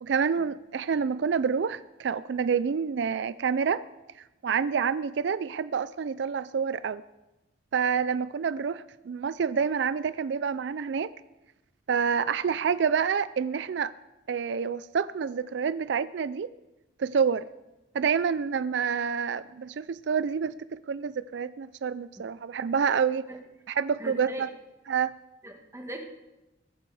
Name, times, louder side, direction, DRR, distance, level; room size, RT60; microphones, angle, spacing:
voice 1, 0.0-3.8 4.4-7.0 7.7-11.1 11.9-13.9 14.3-16.5 17.0-17.5 17.9-23.2 23.8-24.5 24.9-25.1, right 6 dB, 70° right, 15 dB, 0.4 m, -28 dB
voice 2, 24.0-24.5 25.4-26.0, right 1 dB, 15° right, 3 dB, 1.7 m, -39 dB
21.5 x 9.2 x 4.8 m, 1.0 s
head